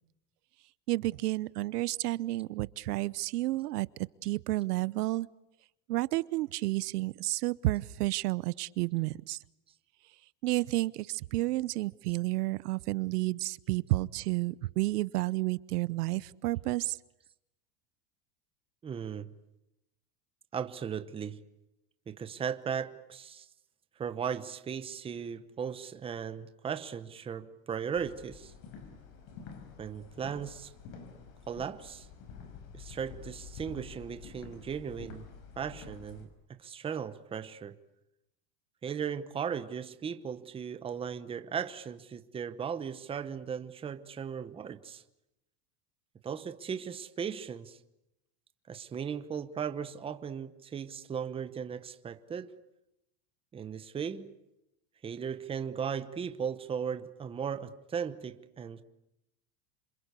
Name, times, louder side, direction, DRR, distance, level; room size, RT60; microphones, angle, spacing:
voice 1, 0.9-3.9 4.2-5.3 5.9-9.4 10.4-17.0, right 18 dB, 80° right, 1.0 m, -31 dB
voice 2, 18.8-19.3 20.5-21.4 22.1-23.5 24.0-28.5 29.8-30.7 31.5-32.1 32.7-35.3 35.6-37.8 38.8-45.0 46.2-47.8 48.7-52.5 53.5-54.3 55.0-58.8, right 7 dB, 10° right, 0.9 m, -37 dB
sound 1, 27.9-36.3, left 6 dB, 45° left, 5.9 m, -49 dB
28.0 x 26.0 x 8.3 m
supercardioid pair, 160°, 46 cm